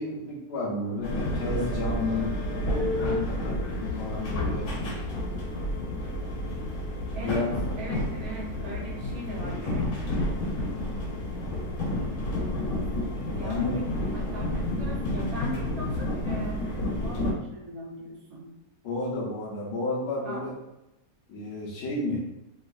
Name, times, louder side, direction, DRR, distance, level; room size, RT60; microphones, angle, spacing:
voice 1, 0.0-2.3 2.6-5.0 7.2-7.5 13.3-13.8 18.8-20.5 21.3-22.2, left 2 dB, 80° left, -4 dB, 1.3 m, -32 dB
sound 1, 1.0-17.3, left 1 dB, 60° left, 1.4 m, -30 dB
voice 2, 7.1-7.5 7.8-9.9 13.3-16.0 16.2-16.7 16.9-18.5 20.2-20.4, right 1 dB, 55° right, -4 dB, 0.4 m, -39 dB
3.4 x 3.0 x 2.3 m, 0.92 s
omnidirectional pair, 1.8 m